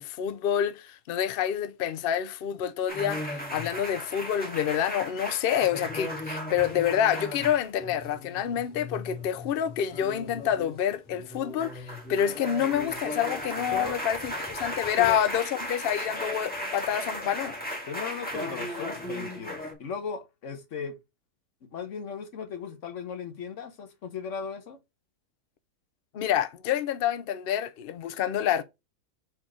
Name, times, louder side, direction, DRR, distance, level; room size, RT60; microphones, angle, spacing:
voice 1, 0.0-17.5 26.1-28.6, left 9 dB, 80° left, 0.5 m, -28 dB
sound 1, 2.9-19.7, left 1 dB, 5° left, 1.7 m, -36 dB
voice 2, 17.9-21.0 21.7-24.8, left 6 dB, 55° left, 1.3 m, -37 dB
4.5 x 4.3 x 4.9 m
omnidirectional pair, 1.6 m